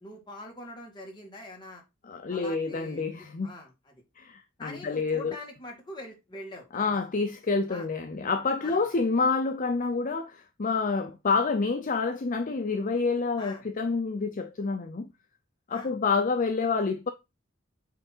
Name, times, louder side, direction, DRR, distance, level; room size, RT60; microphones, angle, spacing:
voice 1, 0.0-1.8 2.3-3.0 3.4-3.9 4.6-7.0 7.7-7.9 8.6-8.8 13.4-13.6 15.7-15.9, left 1 dB, 25° left, 2.2 m, -43 dB
voice 2, 2.0-3.5 4.2-5.3 6.7-15.1 15.7-17.1, left 4 dB, 40° left, 0.6 m, -28 dB
8.4 x 3.4 x 4.5 m
head